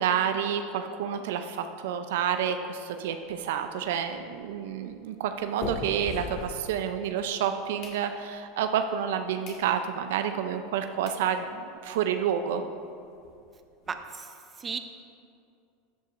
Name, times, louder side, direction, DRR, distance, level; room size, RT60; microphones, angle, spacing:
voice 1, 0.0-12.6, right 8 dB, 75° right, 7 dB, 0.5 m, -29 dB
sound 1, 3.2-7.2 7.5-8.5 9.0-9.1 9.4-9.7 10.1-10.2 10.8-10.9 11.1-11.3 11.7-11.8 11.9-12.1 12.4-12.5 12.8-13.9, left 3 dB, 55° left, 1.9 m, -42 dB
voice 2, 13.9-14.8, right 6 dB, 25° right, 7 dB, 0.8 m, -36 dB
13.5 x 9.0 x 2.6 m, 2.5 s
hypercardioid pair, 100°, 0 cm